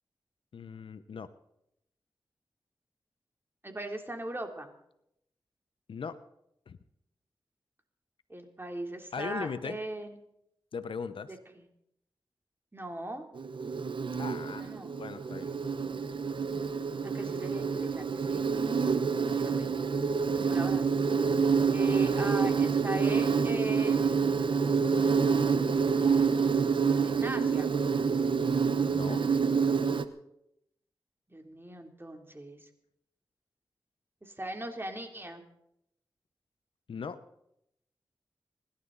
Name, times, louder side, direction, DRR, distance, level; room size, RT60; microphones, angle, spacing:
voice 1, 0.5-1.3 5.9-6.2 6.7-6.8 9.1-9.8 10.7-11.3 14.1-14.7 15.0-15.6 28.9-29.2 36.9-37.2, left 5 dB, 80° left, 12 dB, 0.9 m, -39 dB
voice 2, 3.6-4.7 8.3-10.2 11.3-11.6 12.7-13.3 14.4-14.9 17.0-18.7 19.4-19.7 20.5-20.9 21.7-24.4 27.0-27.7 31.3-32.7 34.2-35.4, right 1 dB, 25° right, 4 dB, 3.3 m, -39 dB
Insect, 13.4-30.0, right 5 dB, 70° right, 1.0 m, -27 dB
26.5 x 11.5 x 4.1 m, 0.79 s
cardioid pair, 40°, 9 cm